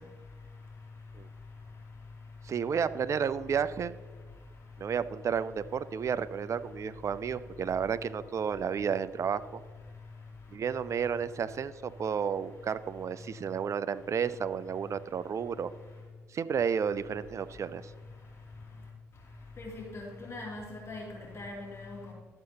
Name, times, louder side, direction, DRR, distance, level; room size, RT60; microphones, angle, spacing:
voice 1, 2.4-3.9 4.8-9.5 10.5-15.7 16.3-17.9, right 7 dB, 45° right, 14 dB, 0.5 m, -32 dB
voice 2, 19.6-22.1, left 2 dB, 40° left, -3 dB, 2.7 m, -41 dB
12.5 x 7.7 x 2.9 m, 1.5 s
hypercardioid pair, 50°, 7 cm